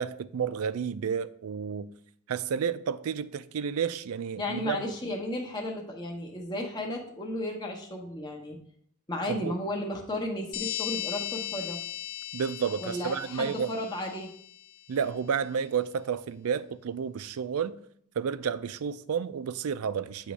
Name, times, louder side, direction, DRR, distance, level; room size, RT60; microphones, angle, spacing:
voice 1, 0.0-1.9 2.3-4.8 9.3-9.5 12.3-13.7 14.9-17.8 18.2-20.3, right 7 dB, 85° right, 0.4 m, -31 dB
voice 2, 4.4-8.6 9.1-11.8 12.8-14.3, left 1 dB, 20° left, 0.8 m, -34 dB
sound 1, 10.5-14.8, left 12 dB, 80° left, 0.6 m, -37 dB
8.3 x 3.1 x 6.1 m
head